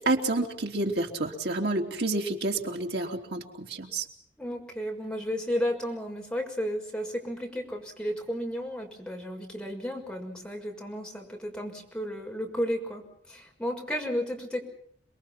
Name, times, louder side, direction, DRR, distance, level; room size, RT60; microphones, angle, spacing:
voice 1, 0.0-4.1, right 2 dB, 65° right, 2 dB, 3.4 m, -29 dB
voice 2, 4.4-14.6, equal, 5° left, 0 dB, 6.3 m, -33 dB
29.5 x 21.5 x 6.0 m, 0.66 s
head